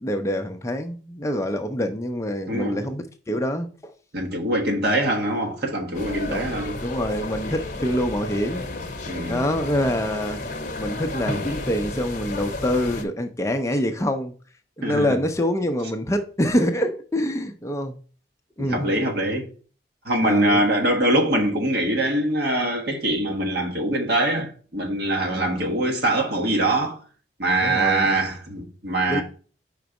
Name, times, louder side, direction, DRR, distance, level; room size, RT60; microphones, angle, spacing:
voice 1, 0.0-3.9 6.3-6.4 6.8-8.7 9.3-10.4 10.8-14.3 14.8-18.0 18.6-18.9 20.2-20.7 25.3-25.7 27.6-28.2 29.1-29.2, equal, 15° left, 0.5 m, -26 dB
voice 2, 2.5-2.9 4.1-6.8 9.0-9.4 14.8-15.1 18.6-19.5 20.0-27.0 27.4-29.2, right 1 dB, 60° right, 1.4 m, -23 dB
sound 1, 5.9-13.0, left 2 dB, 45° left, 0.9 m, -32 dB
5.1 x 3.9 x 4.7 m
head